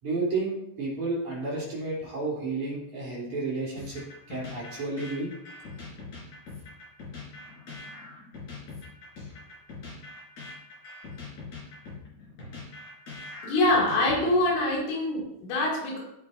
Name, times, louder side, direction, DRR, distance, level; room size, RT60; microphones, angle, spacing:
voice 1, 0.0-5.3, right 3 dB, 40° right, -6 dB, 4.5 m, -31 dB
sound 1, 3.8-14.6, left 3 dB, 40° left, 5.1 m, -43 dB
voice 2, 13.4-16.0, left 1 dB, 75° left, -3 dB, 5.1 m, -25 dB
17.5 x 8.3 x 2.7 m, 0.79 s
omnidirectional pair, 5.6 m